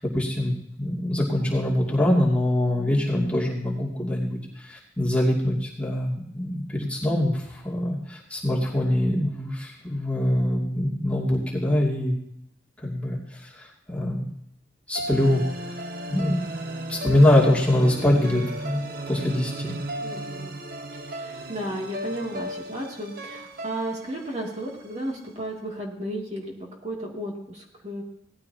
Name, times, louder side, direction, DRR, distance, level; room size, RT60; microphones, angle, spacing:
voice 1, 0.0-12.1 12.8-14.2 14.9-15.4 16.1-16.4 16.9-19.7, left 1 dB, 5° left, -5 dB, 2.6 m, -24 dB
sound 1, 14.9-25.2, right 1 dB, 55° right, 1.2 m, -35 dB
voice 2, 20.0-20.6 20.9-28.0, right 1 dB, 40° right, -2 dB, 2.7 m, -34 dB
18.5 x 14.0 x 2.9 m, 0.76 s
head